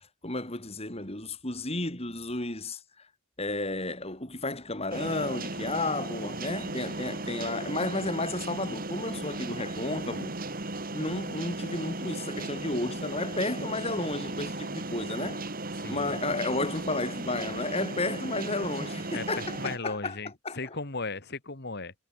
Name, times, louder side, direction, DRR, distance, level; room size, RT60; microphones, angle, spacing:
voice 1, 0.2-2.8 3.4-10.4 10.9-15.5 15.9-20.2 20.4-20.6, left 2 dB, 30° left, 3.9 m, -32 dB
sound 1, 4.9-19.8, right 2 dB, 40° right, 3.4 m, -36 dB
voice 2, 15.8-16.1 19.1-21.9, left 3 dB, 50° left, 2.3 m, -37 dB
head